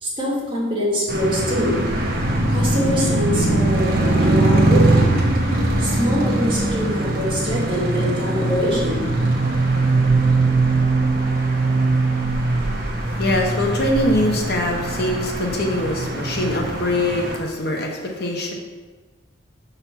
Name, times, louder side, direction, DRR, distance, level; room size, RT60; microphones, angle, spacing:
voice 1, 0.0-1.8 2.5-5.1 5.8-9.1, equal, 25° right, -6 dB, 2.0 m, -24 dB
sound 1, 1.1-17.4, right 2 dB, 50° right, 1.0 m, -21 dB
voice 2, 13.1-18.5, left 1 dB, 55° left, 0 dB, 1.0 m, -23 dB
6.8 x 4.1 x 5.7 m, 1.3 s
head